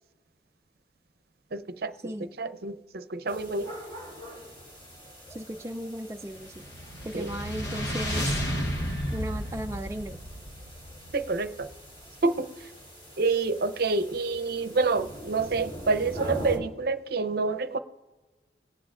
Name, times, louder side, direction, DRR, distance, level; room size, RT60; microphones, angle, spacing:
voice 1, 1.5-3.8 7.1-7.4 11.1-11.7 12.2-12.7 13.2-17.8, right 3 dB, 60° right, 10 dB, 0.6 m, -28 dB
sound 1, 3.3-16.6, right 1 dB, 30° left, 3.1 m, -43 dB
voice 2, 5.3-6.6 7.0-8.4 9.1-10.2, right 1 dB, 15° right, 4 dB, 0.3 m, -36 dB
sound 2, 6.4-11.8, equal, 75° left, 1.0 m, -33 dB
19.0 x 8.6 x 2.4 m, 1.2 s
head